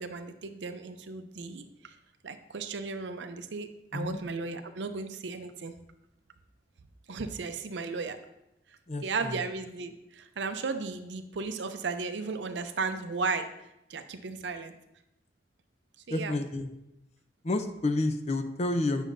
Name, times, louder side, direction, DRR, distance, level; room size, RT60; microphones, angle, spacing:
voice 1, 0.0-2.0 2.2-5.7 7.1-8.2 9.0-13.5 13.9-14.7 16.1-16.3, right 4 dB, 90° right, 9 dB, 0.6 m, -35 dB
voice 2, 8.9-9.4 16.1-16.7 17.4-19.0, left 2 dB, 40° left, 8 dB, 0.6 m, -30 dB
9.1 x 6.2 x 2.6 m, 0.88 s
head